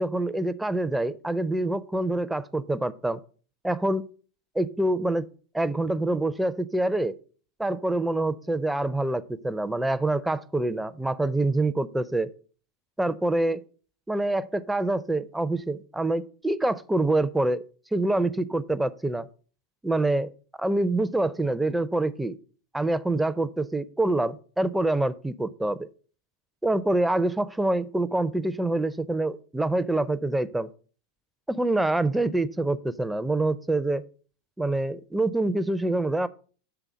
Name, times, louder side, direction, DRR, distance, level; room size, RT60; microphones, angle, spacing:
voice 1, 0.0-3.2 3.6-4.1 4.6-5.3 5.5-7.1 7.6-12.3 13.0-13.6 14.1-17.6 17.9-19.3 19.8-20.3 20.6-22.4 22.7-25.9 26.6-30.7 31.5-34.0 34.6-36.3, right 2 dB, 5° right, 12 dB, 0.4 m, -26 dB
6.9 x 3.4 x 6.1 m, 0.41 s
hypercardioid pair, 100°, 0 cm